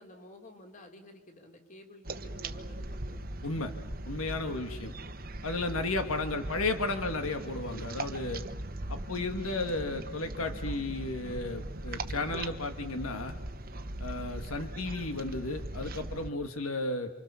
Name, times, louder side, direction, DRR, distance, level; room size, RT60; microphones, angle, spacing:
voice 1, 0.0-3.2 4.6-5.1, left 1 dB, 35° left, 4 dB, 3.4 m, -53 dB
sound 1, 2.0-16.3, right 1 dB, 45° right, 1.2 m, -40 dB
voice 2, 4.1-4.9 5.4-8.4 8.9-13.3 14.0-17.1, left 2 dB, 85° left, 7 dB, 1.9 m, -33 dB
29.0 x 26.5 x 7.0 m, 1.0 s
head